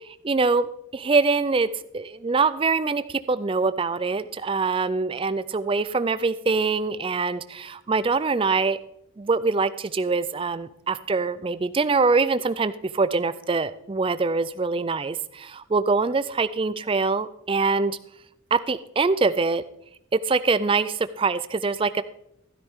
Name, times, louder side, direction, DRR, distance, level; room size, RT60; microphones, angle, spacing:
voice 1, 0.2-0.6 0.9-1.7 1.9-3.0 3.3-8.8 9.2-12.7 13.0-15.2 15.7-17.9 18.5-19.6 20.3-22.0, right 4 dB, 25° right, 14 dB, 0.3 m, -23 dB
13.0 x 12.5 x 3.6 m, 0.79 s
head